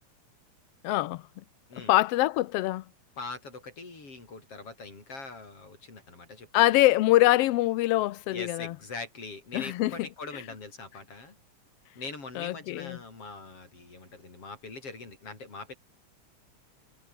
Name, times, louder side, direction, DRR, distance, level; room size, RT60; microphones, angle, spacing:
voice 1, 0.8-1.2 1.9-2.8 6.5-8.7 9.5-9.9 12.4-13.0, left 16 dB, 80° left, 1.4 m, -24 dB
voice 2, 3.2-6.6 8.3-11.4 11.9-15.7, left 3 dB, 50° left, 6.8 m, -42 dB
omnidirectional pair, 3.4 m